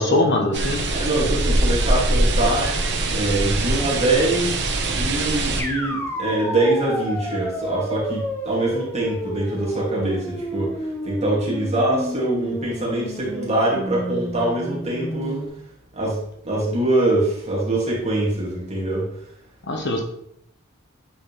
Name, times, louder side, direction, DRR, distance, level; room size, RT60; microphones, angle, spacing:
voice 1, 0.0-0.9 19.6-20.0, left 1 dB, 55° left, 2 dB, 1.2 m, -22 dB
sound 1, 0.5-5.6, right 2 dB, 55° right, 1.0 m, -22 dB
voice 2, 0.9-2.7 3.1-15.4 15.9-16.2 16.4-19.1, right 2 dB, 30° right, -5 dB, 2.6 m, -23 dB
sound 2, 5.6-15.5, equal, 10° left, 0.9 m, -31 dB
9.6 x 4.4 x 3.5 m, 0.71 s
head